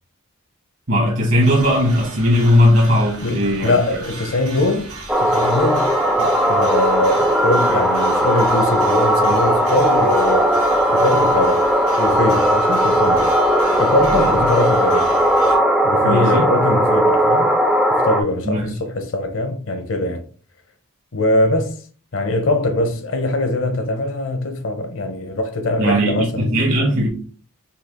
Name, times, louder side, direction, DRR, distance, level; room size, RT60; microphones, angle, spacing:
voice 1, 0.9-3.8 14.1-14.3 16.0-16.5 18.4-18.8 25.8-27.1, equal, 60° right, 1.2 m, -17 dB
sound 1, 1.4-15.6, right 2 dB, 90° right, 1.8 m, -36 dB
voice 2, 3.2-4.9 5.2-5.9 6.2-10.5 10.9-11.7 12.0-13.3 13.8-15.1 15.8-17.5 18.0-20.2 21.1-21.8 22.1-26.6, left 2 dB, 65° left, 0.7 m, -22 dB
sound 2, 5.1-18.2, right 1 dB, 5° right, 0.3 m, -17 dB
5.5 x 2.4 x 3.6 m
head